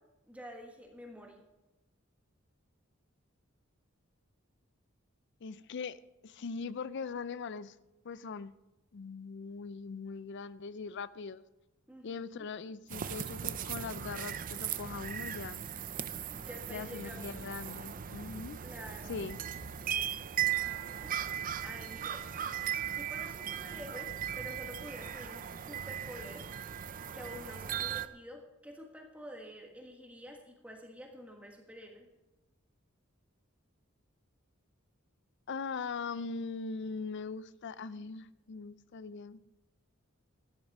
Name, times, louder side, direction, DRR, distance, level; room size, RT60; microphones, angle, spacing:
voice 1, 0.3-1.4 11.9-12.1 12.4-12.5 16.3-17.4 18.6-19.2 20.6-21.1 21.6-22.2 23.0-26.5 27.1-32.1, equal, 5° right, 1.4 m, -48 dB
voice 2, 5.4-6.0 6.2-7.8 8.0-8.5 8.9-11.4 12.0-15.6 16.7-18.6 19.1-19.4 35.5-39.4, left 5 dB, 60° left, 0.5 m, -41 dB
sound 1, 12.9-28.1, right 9 dB, 40° right, 0.5 m, -38 dB
13.0 x 9.4 x 5.3 m
head